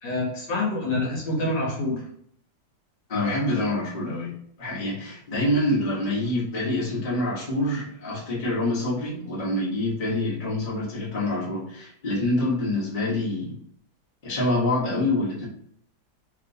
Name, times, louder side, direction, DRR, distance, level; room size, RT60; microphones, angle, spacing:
voice 1, 0.0-2.0, left 2 dB, 70° left, -3 dB, 1.6 m, -26 dB
voice 2, 3.1-13.6 14.2-15.5, left 1 dB, 30° left, -7 dB, 1.0 m, -26 dB
3.2 x 2.9 x 2.6 m, 0.69 s
omnidirectional pair, 2.1 m